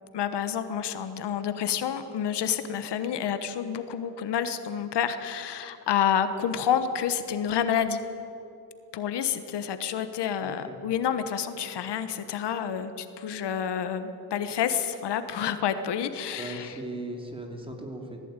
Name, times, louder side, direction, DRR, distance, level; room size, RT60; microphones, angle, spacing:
voice 1, 0.1-8.0 8.9-16.7, left 8 dB, 80° left, 10 dB, 1.3 m, -29 dB
voice 2, 10.4-10.8 11.7-11.8 16.3-18.2, right 1 dB, 15° right, 2 dB, 2.8 m, -38 dB
19.0 x 15.0 x 9.0 m, 2.8 s
cardioid pair, 130°, 41 cm